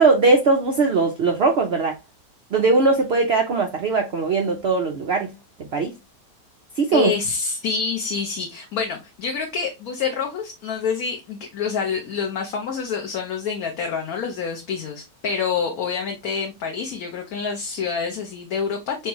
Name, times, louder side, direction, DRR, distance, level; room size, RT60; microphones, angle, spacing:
voice 1, 0.0-2.0 2.5-5.3 5.7-5.9 6.8-7.1, right 3 dB, 80° right, 0.5 m, -19 dB
voice 2, 6.9-19.1, left 5 dB, 60° left, 1.1 m, -27 dB
4.4 x 3.1 x 2.9 m
omnidirectional pair, 1.9 m